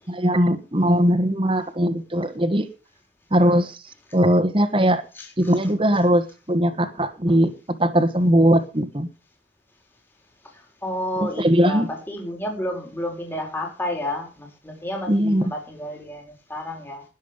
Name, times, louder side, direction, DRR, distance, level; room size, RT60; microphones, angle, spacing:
voice 1, 0.1-2.7 3.3-5.0 5.4-7.5 7.8-9.1 11.2-11.9 15.1-15.5, equal, 30° right, 7 dB, 1.5 m, -20 dB
voice 2, 10.8-17.0, left 1 dB, 10° left, 0 dB, 4.3 m, -31 dB
20.0 x 7.5 x 5.2 m, 0.32 s
head